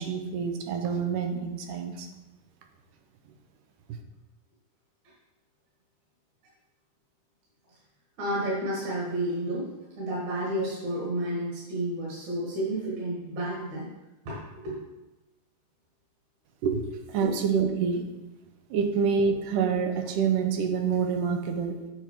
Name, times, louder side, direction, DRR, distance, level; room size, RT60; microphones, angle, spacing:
voice 1, 0.0-2.1 16.6-16.8 17.1-18.1 18.7-21.9, right 6 dB, 85° right, 5 dB, 2.3 m, -27 dB
voice 2, 8.2-9.7 10.0-13.9 14.3-14.8 17.2-17.4, right 1 dB, 65° right, -5 dB, 2.8 m, -31 dB
7.7 x 5.2 x 4.4 m, 1.0 s
omnidirectional pair, 3.7 m